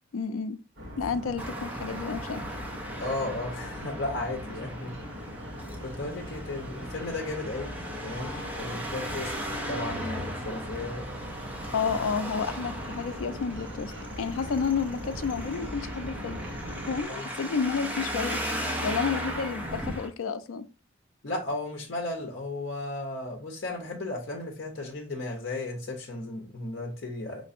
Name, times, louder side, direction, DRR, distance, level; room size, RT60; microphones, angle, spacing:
voice 1, 0.1-0.6 1.0-2.4 11.7-13.9 14.2-16.4 16.9-18.4 18.8-20.7, left 5 dB, 90° left, 0.4 m, -30 dB
sound 1, 0.8-17.0, equal, 65° right, 1.5 m, -40 dB
Traffic noise roadway noise, 1.4-20.1, equal, 10° right, 0.6 m, -37 dB
voice 2, 3.0-5.4 5.8-7.7 8.0-9.3 9.7-11.1 11.5-12.0 17.1-17.3 21.2-27.4, left 2 dB, 55° left, 0.8 m, -35 dB
5.3 x 3.2 x 2.6 m
head